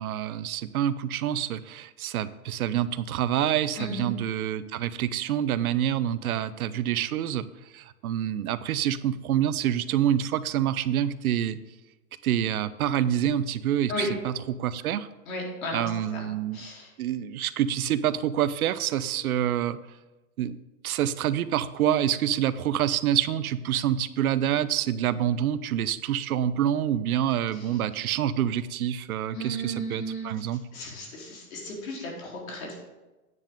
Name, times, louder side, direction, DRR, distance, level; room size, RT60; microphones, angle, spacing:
voice 1, 0.0-7.5 7.7-11.6 12.2-15.1 15.7-16.6 17.0-19.8 20.4-30.6, right 10 dB, 80° right, 15 dB, 0.7 m, -27 dB
voice 2, 3.8-4.1 13.9-14.1 15.3-16.3 16.5-16.9 27.5-27.7 29.3-30.3 30.7-32.8, right 1 dB, 70° left, -1 dB, 3.9 m, -34 dB
9.6 x 9.2 x 3.8 m, 1.1 s
supercardioid pair, 150°, 43 cm